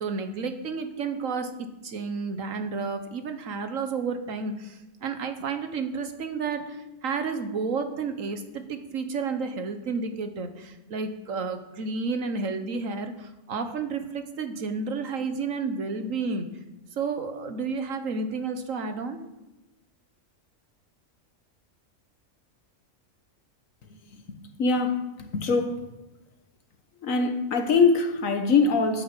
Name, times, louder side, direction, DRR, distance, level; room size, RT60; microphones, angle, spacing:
voice 1, 0.0-1.5 1.8-16.5 17.0-19.2, right 4 dB, 80° right, 1.6 m, -31 dB
voice 2, 23.9-25.8 27.0-29.0, left 4 dB, 85° left, 1.7 m, -24 dB
9.8 x 9.2 x 7.4 m
omnidirectional pair, 1.4 m